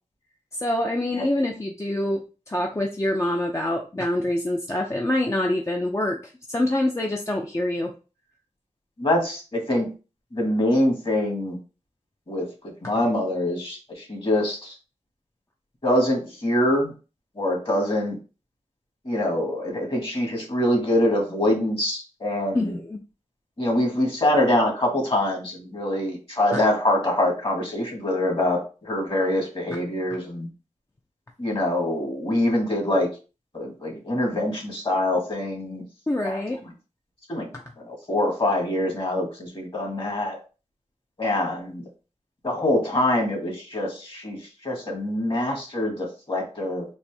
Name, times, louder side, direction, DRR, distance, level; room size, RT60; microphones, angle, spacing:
voice 1, 0.6-7.9 22.5-23.0 36.1-36.6, left 1 dB, 25° left, 1 dB, 0.5 m, -25 dB
voice 2, 9.0-9.9 10.3-11.6 12.3-14.7 15.8-16.9 17.3-18.2 19.0-22.8 23.6-30.5 31.4-33.1 33.5-35.8 36.2-36.4 37.3-37.5 37.8-40.4 41.2-41.9 42.4-46.8, left 1 dB, 45° left, 0 dB, 1.8 m, -24 dB
4.3 x 2.6 x 3.4 m, 0.34 s
wide cardioid pair, 65°, 13 cm